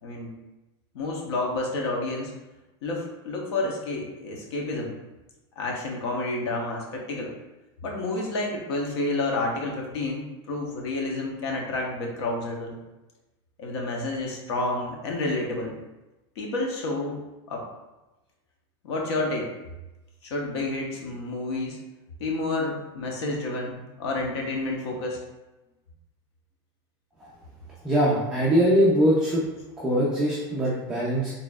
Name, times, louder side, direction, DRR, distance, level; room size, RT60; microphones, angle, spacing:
voice 1, 0.0-0.3 0.9-2.3 2.8-4.9 5.6-7.3 7.8-12.8 13.6-15.7 16.4-17.2 17.5-17.6 18.8-19.5 20.2-21.8 22.2-25.2, left 2 dB, 90° left, -1 dB, 1.1 m, -29 dB
voice 2, 27.8-29.5 29.8-31.3, equal, 5° right, -7 dB, 0.5 m, -22 dB
4.2 x 3.6 x 2.4 m, 1.0 s
supercardioid pair, 170°, 13 cm